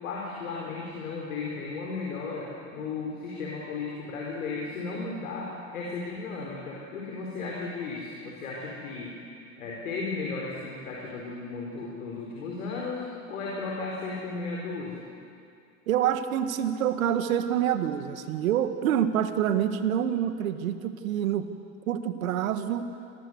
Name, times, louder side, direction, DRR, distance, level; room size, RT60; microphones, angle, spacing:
voice 1, 0.0-9.2 9.6-15.1, left 4 dB, 85° left, -3 dB, 4.8 m, -35 dB
voice 2, 15.9-21.5 21.9-22.9, right 10 dB, 80° right, 9 dB, 1.8 m, -27 dB
27.0 x 20.0 x 8.2 m, 2.4 s
hypercardioid pair, 80°, 40 cm